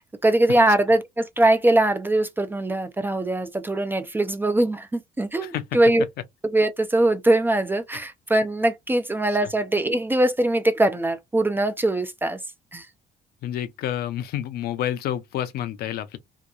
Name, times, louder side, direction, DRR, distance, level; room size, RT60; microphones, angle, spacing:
voice 1, 0.0-6.0 6.5-12.4 12.7-12.9, right 1 dB, 10° right, 0.3 m, -22 dB
voice 2, 13.4-16.2, left 11 dB, 70° left, 0.5 m, -29 dB
2.9 x 2.2 x 2.3 m
cardioid pair, 110°, 17 cm